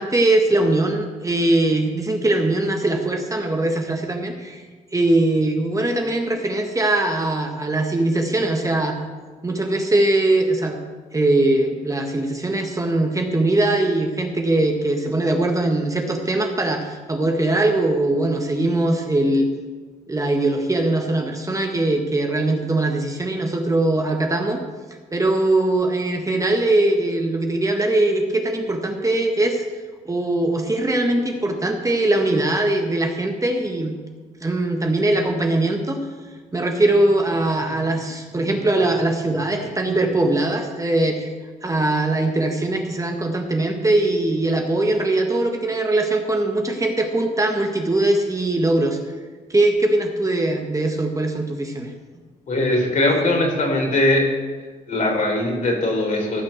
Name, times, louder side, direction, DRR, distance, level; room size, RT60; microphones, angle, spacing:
voice 1, 0.0-4.6 4.9-9.0 9.4-10.8 11.1-19.5 20.1-24.6 25.1-29.6 30.0-34.0 34.4-36.0 36.5-41.3 41.6-49.0 49.5-51.9, right 2 dB, 20° right, 3 dB, 1.7 m, -21 dB
voice 2, 52.5-54.3 54.9-56.4, left 1 dB, 60° left, 0 dB, 4.1 m, -20 dB
15.0 x 6.2 x 6.6 m, 1.3 s
cardioid pair, 70°, 15 cm